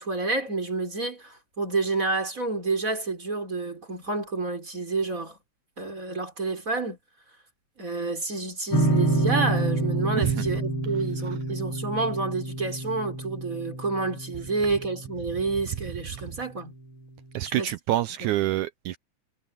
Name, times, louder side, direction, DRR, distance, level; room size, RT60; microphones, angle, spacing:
voice 1, 0.0-5.4 5.8-7.0 7.8-16.7 17.6-17.7, right 3 dB, 25° right, 4.6 m, -29 dB
sound 1, 8.7-15.9, right 2 dB, 45° left, 3.8 m, -28 dB
voice 2, 17.3-19.0, right 14 dB, 80° right, 2.1 m, -27 dB
omnidirectional pair, 3.6 m